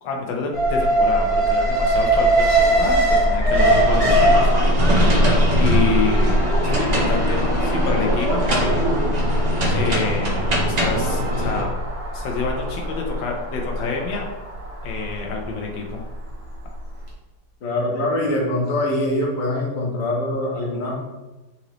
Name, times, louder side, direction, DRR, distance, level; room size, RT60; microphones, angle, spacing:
voice 1, 0.0-4.5 5.5-8.7 9.7-11.7 12.1-14.3 14.8-16.0, left 4 dB, 80° left, 1 dB, 1.5 m, -27 dB
Alarm, 0.5-16.6 17.0-17.1, right 1 dB, 20° right, 1.0 m, -21 dB
sound 1, 3.6-11.7, equal, 45° right, 0.5 m, -23 dB
voice 2, 17.6-20.9, left 1 dB, 50° left, -2 dB, 1.4 m, -23 dB
4.4 x 4.0 x 3.0 m, 1.1 s
omnidirectional pair, 2.0 m